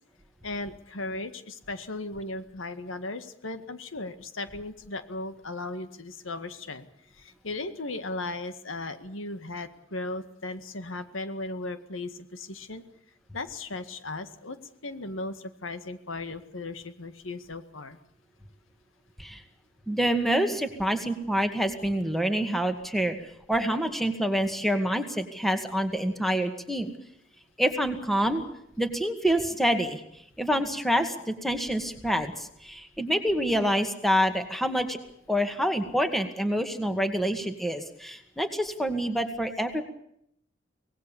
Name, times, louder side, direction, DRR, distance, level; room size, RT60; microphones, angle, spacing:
voice 1, 0.4-6.9 7.2-12.8 13.3-14.6 14.8-18.0, left 2 dB, 85° left, 10 dB, 1.9 m, -36 dB
voice 2, 19.9-23.1 23.5-26.9 27.6-28.4 28.8-30.0 30.4-35.0 35.3-39.8, equal, ahead, 7 dB, 2.1 m, -27 dB
24.5 x 19.5 x 7.1 m, 0.73 s
head